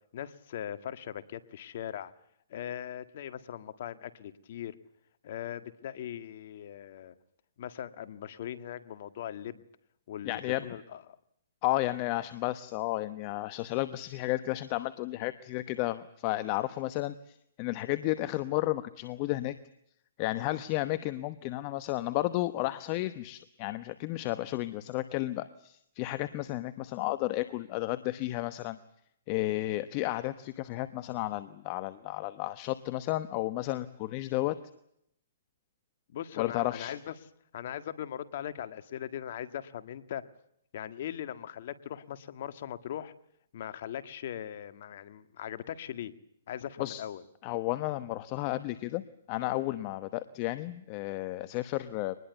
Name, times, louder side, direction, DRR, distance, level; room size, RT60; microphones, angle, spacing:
voice 1, 0.1-2.1 2.5-4.7 5.2-7.1 7.6-9.6 10.1-11.0 36.1-37.1 37.5-40.2 40.7-43.1 43.5-46.1 46.5-47.2, left 10 dB, 55° left, 11 dB, 1.7 m, -40 dB
voice 2, 10.2-10.6 11.6-19.5 20.2-28.8 29.3-34.5 36.4-36.9 46.8-47.0 47.4-49.0 49.3-52.2, left 17 dB, 35° left, 13 dB, 1.0 m, -32 dB
24.5 x 20.5 x 8.2 m, 0.72 s
hypercardioid pair, 145°, 0 cm